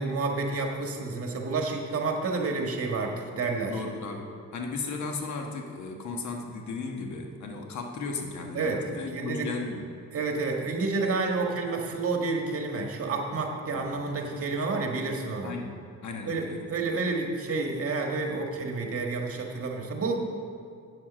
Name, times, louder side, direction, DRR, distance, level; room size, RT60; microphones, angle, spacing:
voice 1, 0.0-3.7 8.5-8.8 9.1-9.5 10.1-15.5 16.3-20.2, right 3 dB, 50° right, 2 dB, 1.6 m, -29 dB
voice 2, 3.6-9.9 13.7-14.1 15.4-16.7, left 3 dB, 70° left, 3 dB, 1.4 m, -36 dB
8.4 x 7.5 x 6.1 m, 2.4 s
cardioid pair, 90°, 30 cm